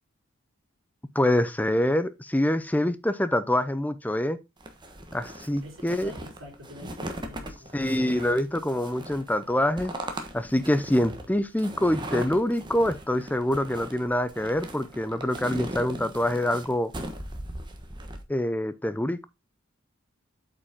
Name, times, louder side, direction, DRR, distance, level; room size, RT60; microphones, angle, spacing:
voice 1, 1.1-4.4 5.1-6.1 7.7-9.9 10.3-16.9 18.3-19.2, left 1 dB, 10° left, 0.6 m, -25 dB
sound 1, 4.6-18.2, right 1 dB, 25° right, 1.2 m, -39 dB
voice 2, 5.6-8.0, left 1 dB, 80° right, 4.1 m, -46 dB
8.2 x 5.4 x 3.6 m
head